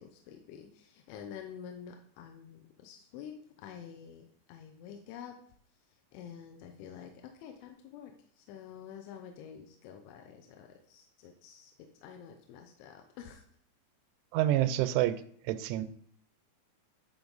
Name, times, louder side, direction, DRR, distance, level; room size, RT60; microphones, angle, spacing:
voice 1, 0.0-5.4 6.1-11.7 12.0-13.4, left 8 dB, 85° left, 4 dB, 3.1 m, -48 dB
voice 2, 14.3-15.2 15.4-15.8, right 14 dB, 90° right, 10 dB, 3.0 m, -27 dB
10.5 x 5.3 x 3.9 m, 0.64 s
omnidirectional pair, 5.3 m